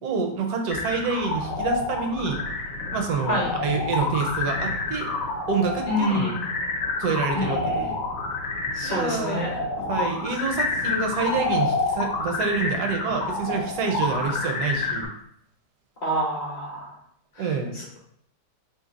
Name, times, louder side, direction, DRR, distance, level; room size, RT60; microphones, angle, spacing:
voice 1, 0.0-2.4 2.9-5.1 5.5-6.3 7.0-8.0 8.8-15.1 17.4-17.7, right 5 dB, 75° right, 3 dB, 1.1 m, -27 dB
sound 1, 0.7-15.1, left 3 dB, 65° left, 1.0 m, -28 dB
voice 2, 5.9-6.4 7.3-7.9 8.7-9.5 16.0-16.9 17.3-17.5 17.7-18.0, equal, 40° left, -5 dB, 0.6 m, -27 dB
2.9 x 2.7 x 3.9 m, 0.67 s
omnidirectional pair, 1.8 m